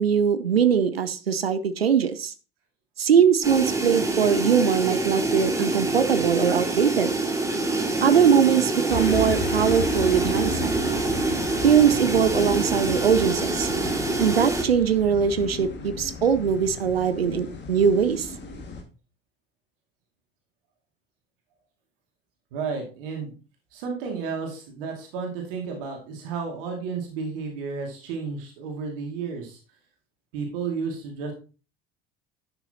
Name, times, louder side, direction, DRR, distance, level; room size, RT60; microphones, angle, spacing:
voice 1, 0.0-2.3 3.0-7.1 8.0-10.8 11.6-13.7 14.2-18.3, right 7 dB, 85° right, 12 dB, 0.7 m, -21 dB
sound 1, 3.4-14.6, right 2 dB, 10° right, 2.1 m, -26 dB
sound 2, 8.9-18.8, left 4 dB, 35° left, 2.0 m, -35 dB
voice 2, 22.5-23.3 23.7-29.6 30.3-31.3, right 5 dB, 65° right, 2 dB, 2.4 m, -32 dB
11.0 x 6.7 x 2.9 m, 0.34 s
figure-of-eight pair, 60°, 30 cm